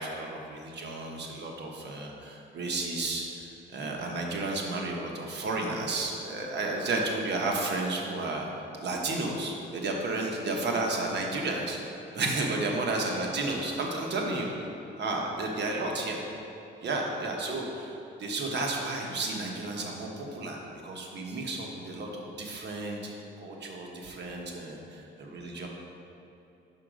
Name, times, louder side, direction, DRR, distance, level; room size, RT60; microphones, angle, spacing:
voice 1, 0.0-8.5 8.8-11.8 12.1-14.5 15.0-16.2 16.8-17.9 18.2-25.7, right 2 dB, 60° right, 0 dB, 1.3 m, -32 dB
5.9 x 5.8 x 5.1 m, 2.9 s
cardioid pair, 90°, 20 cm